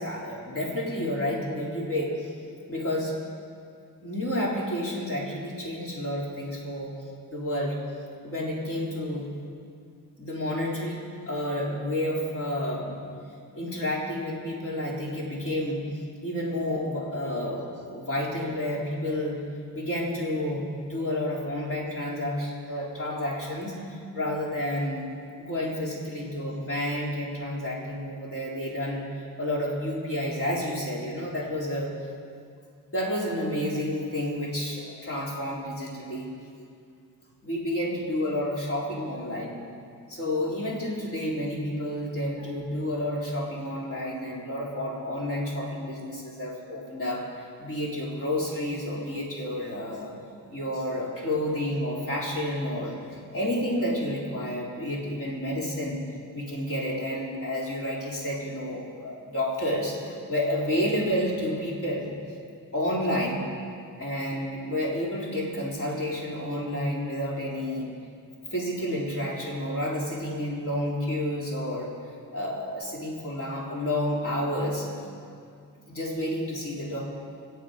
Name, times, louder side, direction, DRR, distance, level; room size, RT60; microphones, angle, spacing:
voice 1, 0.0-2.3 2.7-3.1 4.0-6.9 7.3-7.8 8.2-9.3 10.2-13.0 13.5-15.9 16.2-19.4 19.7-25.1 25.4-31.9 32.9-36.3 37.4-39.6 40.1-47.2 47.6-50.2 50.5-56.0 56.3-62.1 62.7-63.4 64.0-67.9 68.5-71.9 72.3-74.9 75.9-77.0, left 1 dB, 40° left, -4 dB, 3.7 m, -30 dB
25.5 x 8.4 x 5.1 m, 2.3 s
cardioid pair, 125°, 34 cm